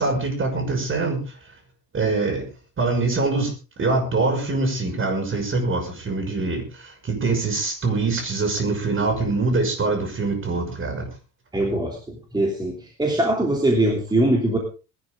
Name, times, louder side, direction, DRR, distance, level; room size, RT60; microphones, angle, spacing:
voice 1, 0.0-1.4 1.9-2.4 2.8-3.5 3.8-11.1, right 3 dB, 30° right, 5 dB, 6.0 m, -24 dB
voice 2, 11.5-14.6, right 1 dB, 10° right, 1 dB, 3.2 m, -22 dB
21.0 x 11.5 x 3.8 m, 0.33 s
cardioid pair, 140°, 39 cm